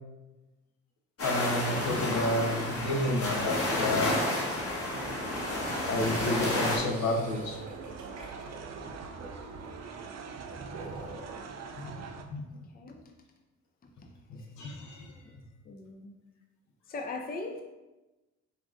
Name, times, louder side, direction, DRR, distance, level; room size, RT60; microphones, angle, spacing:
voice 1, 1.2-4.2 5.9-7.6 11.8-12.0 12.3-12.4 14.3-15.1, left 1 dB, 70° left, 1 dB, 0.9 m, -30 dB
sound 1, 1.2-6.8, left 1 dB, 50° left, 1.4 m, -31 dB
sound 2, 4.9-12.2, right 5 dB, 60° right, 0.6 m, -44 dB
sound 3, 6.1-11.4, right 3 dB, 90° right, 1.3 m, -44 dB
voice 2, 15.7-16.1 16.9-17.6, left 3 dB, 30° left, 2 dB, 0.6 m, -38 dB
5.4 x 2.5 x 3.7 m, 1.1 s
cardioid pair, 90°, 30 cm